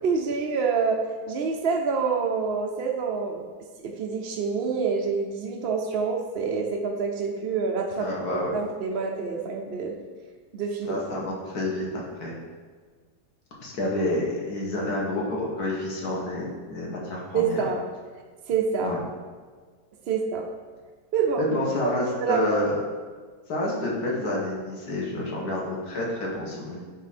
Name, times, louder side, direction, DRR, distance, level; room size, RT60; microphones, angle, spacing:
voice 1, 0.0-3.5 3.8-10.0 10.5-11.0 17.3-17.8 18.5-18.9 20.1-20.5 21.1-21.5 22.2-22.6, right 5 dB, 65° right, 1 dB, 0.6 m, -27 dB
voice 2, 8.0-8.6 10.9-12.4 13.6-17.6 18.8-19.0 21.4-22.8 23.5-26.8, left 1 dB, 65° left, -3 dB, 2.0 m, -29 dB
9.1 x 3.7 x 4.2 m, 1.5 s
omnidirectional pair, 1.8 m